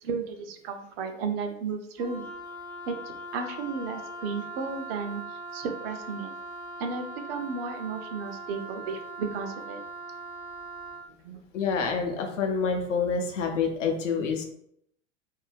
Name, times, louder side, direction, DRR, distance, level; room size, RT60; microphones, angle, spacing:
voice 1, 0.0-2.3 2.9-3.0 3.3-5.2 5.5-6.3 6.8-9.8 11.2-11.4, right 5 dB, 50° right, 5 dB, 0.6 m, -33 dB
Wind instrument woodwind instrument, 2.0-11.1, right 1 dB, 10° right, 0.3 m, -41 dB
voice 2, 11.5-14.4, left 5 dB, 70° left, 2 dB, 0.7 m, -27 dB
2.6 x 2.1 x 3.3 m, 0.73 s
figure-of-eight pair, 90°, 38 cm